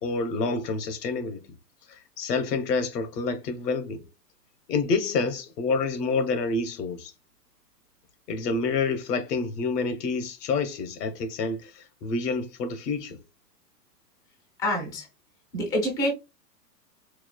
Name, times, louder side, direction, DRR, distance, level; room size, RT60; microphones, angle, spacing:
voice 1, 0.0-1.4 2.2-4.0 4.7-7.1 8.3-11.7 12.0-13.2, left 4 dB, 70° left, 1.0 m, -28 dB
voice 2, 14.6-15.0 15.5-16.1, equal, 10° left, 0.4 m, -26 dB
4.6 x 2.3 x 2.2 m
hypercardioid pair, 145°, 49 cm